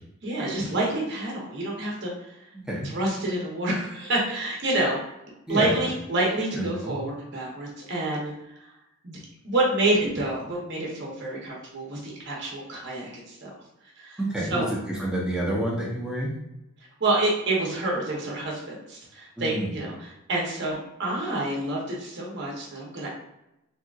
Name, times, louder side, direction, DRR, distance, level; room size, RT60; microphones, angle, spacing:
voice 1, 0.2-2.3 2.8-5.0 5.5-8.3 9.0-9.2 9.4-13.5 14.0-14.7 17.0-23.1, right 2 dB, 55° right, -3 dB, 0.8 m, -28 dB
voice 2, 6.6-7.0 14.2-14.6 15.0-16.3 19.4-19.8, right 1 dB, 5° right, -4 dB, 0.6 m, -28 dB
3.5 x 2.8 x 2.4 m, 0.88 s
head